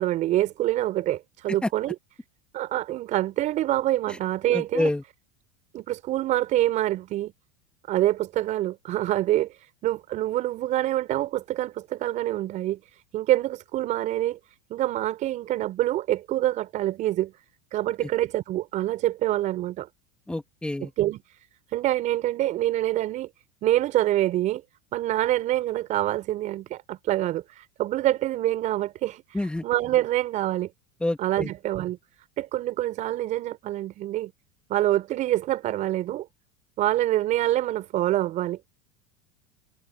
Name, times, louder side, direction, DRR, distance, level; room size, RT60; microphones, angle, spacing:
voice 1, 0.0-1.9 2.5-4.9 5.7-7.3 7.9-14.4 14.7-17.3 17.7-19.9 21.0-21.4 21.7-23.3 23.6-24.6 24.9-30.7 31.2-32.0 32.4-34.3 34.7-36.3 36.8-38.6, right 14 dB, 50° right, 5.8 m, -26 dB
voice 2, 4.5-5.0 18.0-18.1 20.3-20.9 29.3-29.6 31.0-31.5, left 1 dB, 5° left, 2.4 m, -28 dB
hypercardioid pair, 100°, 17 cm